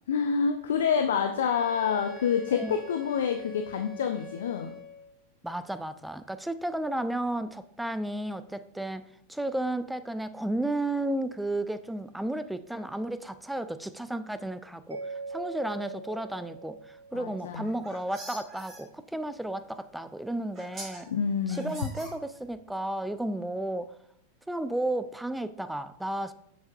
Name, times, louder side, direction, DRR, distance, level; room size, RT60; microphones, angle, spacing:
voice 1, 0.1-4.7 17.1-17.7 21.1-21.7, left 6 dB, 60° left, 6 dB, 0.4 m, -27 dB
Wind instrument woodwind instrument, 1.4-5.1, left 5 dB, 20° left, 0.9 m, -46 dB
voice 2, 5.4-21.1 21.5-23.9 24.5-26.3, right 1 dB, 5° right, 12 dB, 0.3 m, -33 dB
Mallet percussion, 14.9-17.9, right 4 dB, 75° right, 0.5 m, -42 dB
sound 1, 17.5-18.8 19.9-20.0 20.5-21.0 21.5-22.6, right 1 dB, 20° right, 2.6 m, -44 dB
6.8 x 6.4 x 2.4 m, 0.72 s
figure-of-eight pair, 90°, 0 cm